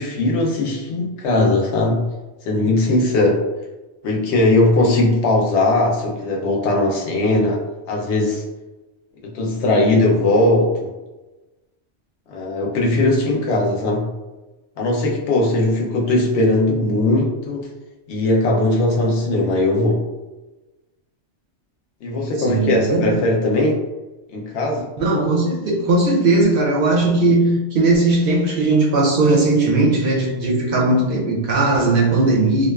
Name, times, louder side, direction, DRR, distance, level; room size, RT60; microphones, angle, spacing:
voice 1, 0.0-2.1 2.4-3.4 4.0-7.6 7.9-8.4 9.2-10.9 12.3-14.1 14.8-17.7 18.1-20.0 22.0-23.8 24.3-24.9, left 2 dB, 70° left, -1 dB, 0.8 m, -19 dB
voice 2, 22.4-23.2 25.0-32.7, right 2 dB, 60° right, -2 dB, 0.6 m, -18 dB
2.5 x 2.2 x 2.2 m, 1.1 s
omnidirectional pair, 1.2 m